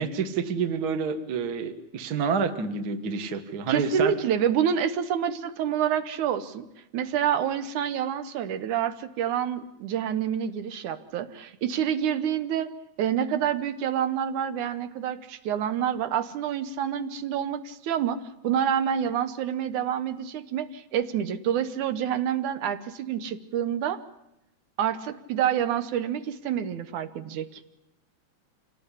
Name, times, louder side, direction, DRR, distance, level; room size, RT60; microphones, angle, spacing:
voice 1, 0.0-4.1, right 5 dB, 40° right, 10 dB, 1.6 m, -28 dB
voice 2, 3.7-6.7 6.9-12.7 13.0-24.0 24.8-27.6, right 9 dB, 75° right, 11 dB, 2.6 m, -27 dB
26.5 x 18.0 x 9.9 m, 0.88 s
omnidirectional pair, 3.5 m